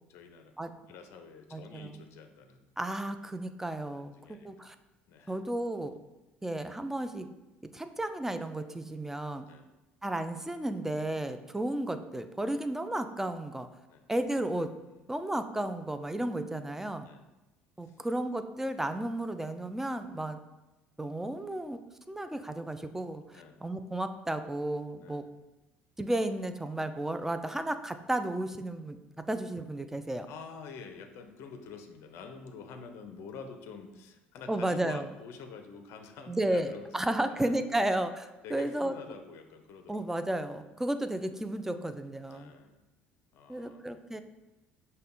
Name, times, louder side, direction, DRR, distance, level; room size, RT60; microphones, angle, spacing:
voice 1, 0.1-0.5 0.9-2.7 4.0-4.7 5.1-5.4 9.5-9.7 12.5-12.6 13.9-14.1 14.9-15.1 17.0-17.2 17.8-18.0 23.3-23.6 25.0-25.3 30.3-37.9 38.4-40.1 42.3-42.8 43.3-44.2, left 5 dB, 50° left, 6 dB, 0.5 m, -48 dB
voice 2, 1.5-2.0 2.8-4.8 5.3-6.0 6.4-7.3 7.7-9.4 10.0-13.7 14.1-14.7 15.1-17.1 17.8-20.4 21.0-21.8 22.1-25.2 26.0-30.3 34.5-35.1 36.3-38.9 39.9-42.5 43.5-44.2, right 1 dB, 5° right, 9 dB, 0.3 m, -33 dB
5.4 x 2.1 x 3.7 m, 1.0 s
figure-of-eight pair, 60°, 6 cm